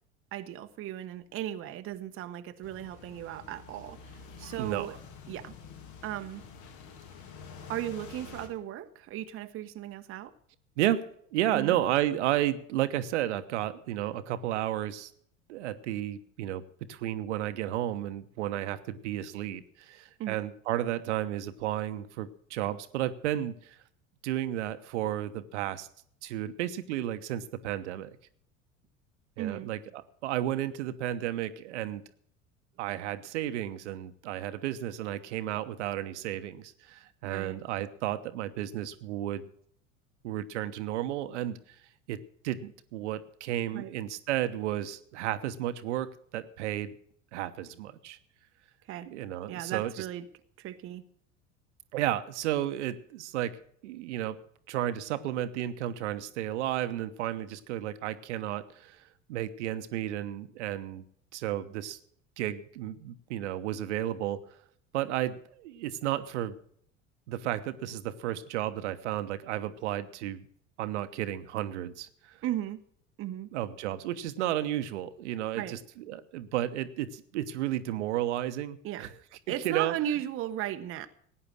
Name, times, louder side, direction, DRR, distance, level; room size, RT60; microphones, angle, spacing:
voice 1, 0.3-5.0 5.3-5.5 6.0-6.4 7.7-10.3 11.5-11.8 20.2-20.4 29.4-29.7 37.2-37.6 43.7-43.9 48.9-49.1 49.5-50.3 50.6-51.0 72.4-72.8 73.2-73.5 75.6-75.8 78.8-79.1 79.5-81.1, right 12 dB, 35° right, 0.9 m, -36 dB
sound 1, 2.6-8.5, left 5 dB, 45° left, 2.3 m, -48 dB
voice 2, 4.6-5.0 10.8-15.1 15.5-23.8 24.2-25.9 26.2-28.1 29.4-32.0 32.8-39.5 40.2-41.6 42.1-46.9 47.3-48.2 49.1-50.0 51.9-59.0 59.3-61.0 61.3-62.0 62.4-64.4 64.9-66.6 67.3-70.4 70.8-72.4 73.5-79.1 79.5-79.9, right 12 dB, 60° right, 1.1 m, -33 dB
17.0 x 9.8 x 6.4 m
figure-of-eight pair, 70°, 39 cm